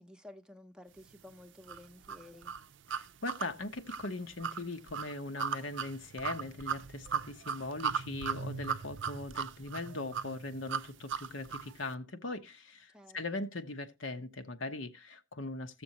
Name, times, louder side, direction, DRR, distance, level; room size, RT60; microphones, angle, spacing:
voice 1, 0.0-2.5 12.9-13.3, left 1 dB, 5° right, 0.8 m, -53 dB
sound 1, 1.7-11.7, right 7 dB, 65° right, 0.5 m, -38 dB
voice 2, 2.9-15.8, left 2 dB, 70° left, 1.1 m, -40 dB
16.0 x 7.0 x 2.9 m
head